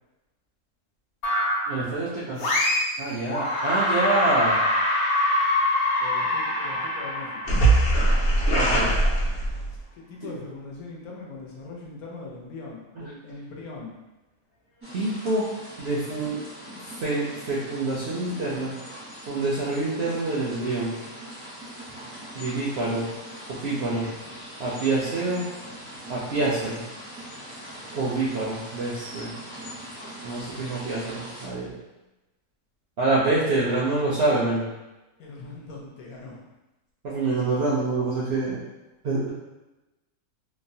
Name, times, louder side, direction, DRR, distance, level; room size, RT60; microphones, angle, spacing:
sound 1, 1.2-1.8 2.4-3.0 3.3-9.8, equal, 60° left, 0.9 m, -23 dB
voice 1, 1.7-2.4 3.0-4.6 8.5-8.9 13.0-13.1 14.9-15.5 15.8-16.4 16.8-18.7 19.3-21.0 22.3-23.1 23.6-24.1 24.6-25.5 26.1-26.8 27.9-29.3 30.2-31.7 33.0-34.7 37.0-38.6 39.0-39.3, right 2 dB, 70° right, -7 dB, 0.6 m, -26 dB
voice 2, 6.0-7.5 9.9-14.0 35.2-36.5, left 3 dB, 80° left, -2 dB, 1.1 m, -40 dB
sound 2, 14.8-31.5, equal, 15° right, 0.4 m, -41 dB
3.0 x 2.0 x 2.6 m, 1.0 s
omnidirectional pair, 1.6 m